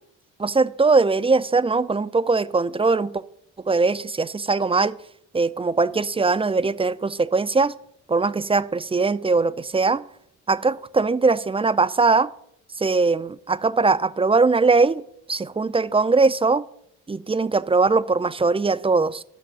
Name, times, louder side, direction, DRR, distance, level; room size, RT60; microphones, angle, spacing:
voice 1, 0.4-3.2 3.7-5.0 5.3-7.7 8.1-10.0 10.5-12.3 12.8-15.0 15.3-16.6 17.1-19.2, right 4 dB, 20° right, 0.6 m, -21 dB
13.0 x 6.1 x 6.9 m
cardioid pair, 90°, 30 cm